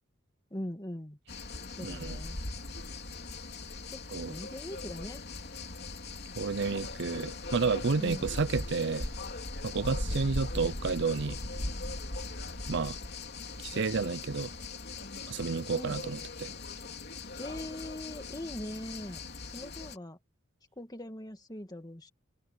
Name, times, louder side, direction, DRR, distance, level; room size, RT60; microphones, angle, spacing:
voice 1, 0.5-1.2 1.8-2.4 3.9-5.2 7.9-8.3 15.8-16.0 17.4-20.2 20.8-22.1, left 1 dB, 20° left, 2.1 m, -41 dB
sound 1, 1.3-20.0, left 2 dB, 55° left, 3.2 m, -39 dB
voice 2, 1.8-2.2 4.1-4.3 6.4-9.1 9.6-11.4 12.7-13.0 13.6-14.5 15.3-16.5, right 4 dB, 60° right, 0.6 m, -31 dB
open air
head